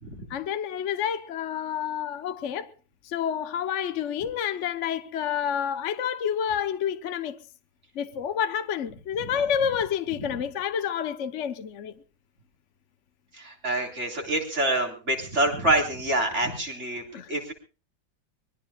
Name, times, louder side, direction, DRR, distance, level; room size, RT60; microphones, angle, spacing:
voice 1, 0.3-2.7 3.0-7.4 7.9-11.9 17.1-17.3, left 8 dB, 50° left, 1.0 m, -29 dB
voice 2, 13.3-17.5, right 1 dB, 35° right, 4.2 m, -27 dB
24.5 x 21.0 x 2.3 m
omnidirectional pair, 2.0 m